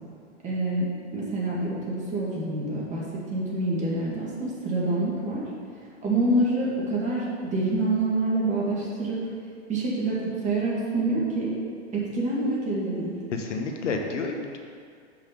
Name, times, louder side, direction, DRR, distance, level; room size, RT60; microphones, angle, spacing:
voice 1, 0.4-0.9 1.1-5.4 6.0-9.2 9.7-11.5 11.9-13.1, right 2 dB, 20° right, -5 dB, 2.1 m, -26 dB
voice 2, 13.3-14.6, left 3 dB, 80° left, 3 dB, 1.1 m, -30 dB
7.2 x 5.8 x 5.3 m, 2.2 s
hypercardioid pair, 125°, 36 cm